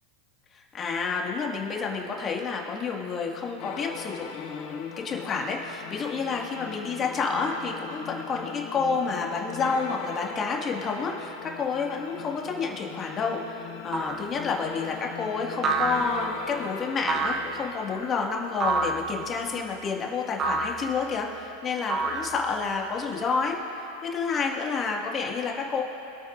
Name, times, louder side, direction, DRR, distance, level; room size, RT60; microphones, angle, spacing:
voice 1, 0.5-25.8, left 5 dB, 30° left, 0 dB, 1.9 m, -29 dB
sound 1, 3.6-17.7, left 7 dB, 60° left, 1.1 m, -40 dB
sound 2, 13.9-14.3 15.6-16.4 17.1-17.7 18.6-19.1 20.4-20.9 21.9-22.6, right 3 dB, 30° right, 1.0 m, -28 dB
25.5 x 8.9 x 2.6 m, 3.0 s
hypercardioid pair, 105°, 0 cm